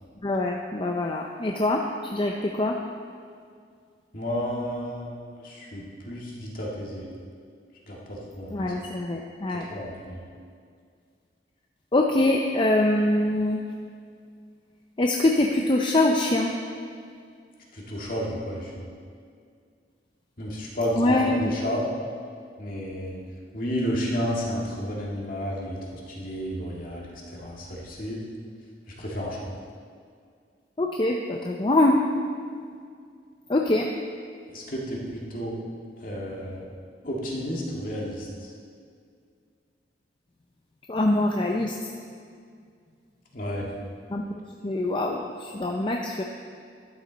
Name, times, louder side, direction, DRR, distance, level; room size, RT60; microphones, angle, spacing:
voice 1, 0.2-2.8 8.5-9.6 11.9-13.6 15.0-16.5 21.0-21.5 30.8-32.0 33.5-33.9 40.9-41.8 44.1-44.2 44.6-46.2, left 2 dB, 30° left, 1 dB, 0.5 m, -24 dB
voice 2, 4.1-7.1 7.9-8.9 9.7-10.2 17.7-18.9 20.4-21.8 22.6-23.2 23.5-28.2 29.0-29.5 34.5-35.6 36.0-36.6 37.0-38.5 43.3-43.7, equal, 50° left, -3 dB, 2.1 m, -32 dB
12.0 x 9.2 x 4.0 m, 2.2 s
head